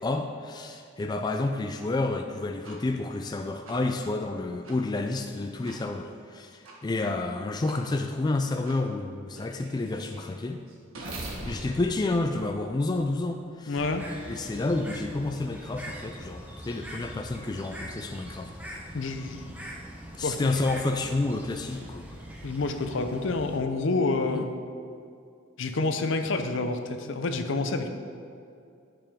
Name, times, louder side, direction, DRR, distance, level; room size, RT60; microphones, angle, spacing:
voice 1, 0.0-10.6 11.4-13.8 14.3-18.5 20.2-22.1 24.3-24.4, left 2 dB, 20° left, 4 dB, 0.3 m, -30 dB
sound 1, 2.6-2.8 3.6-3.8 4.6-4.8 5.6-5.8 6.6-6.8 7.6-7.8 8.6-8.8 9.3-13.2, right 1 dB, 85° right, 1.4 m, -42 dB
voice 2, 13.7-14.0 18.9-19.5 20.2-20.5 22.4-24.5 25.6-27.9, left 3 dB, 65° left, 7 dB, 0.6 m, -28 dB
Bird, 13.8-23.6, equal, 10° right, 0.8 m, -42 dB
10.5 x 6.9 x 3.6 m, 2.4 s
head